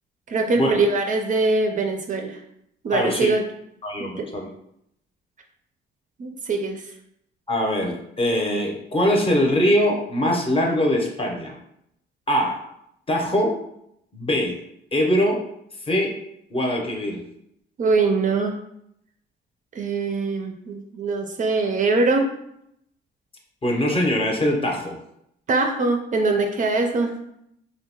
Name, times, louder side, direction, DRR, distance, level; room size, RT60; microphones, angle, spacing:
voice 1, 0.3-2.4 2.8-3.4 4.0-4.3 6.2-6.8 17.8-18.5 19.7-22.2 25.5-27.1, right 3 dB, 40° right, 3 dB, 0.4 m, -22 dB
voice 2, 2.9-3.3 3.8-4.5 7.5-11.6 12.3-12.6 13.1-13.5 14.1-14.6 14.9-15.4 15.9-16.2 16.5-17.2 23.6-25.0, equal, 30° left, 0 dB, 0.6 m, -22 dB
2.7 x 2.1 x 2.7 m, 0.75 s
cardioid pair, 90°, 20 cm